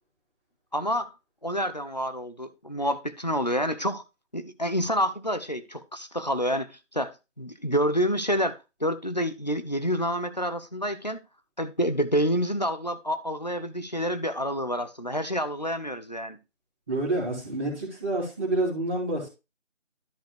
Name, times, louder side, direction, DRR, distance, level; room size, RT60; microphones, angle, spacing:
voice 1, 0.7-1.1 1.4-4.0 4.3-11.2 11.6-16.4, equal, 35° left, 0.6 m, -28 dB
voice 2, 16.9-19.3, right 2 dB, 10° right, 2.2 m, -28 dB
13.0 x 4.9 x 3.1 m
figure-of-eight pair, 165°, 37 cm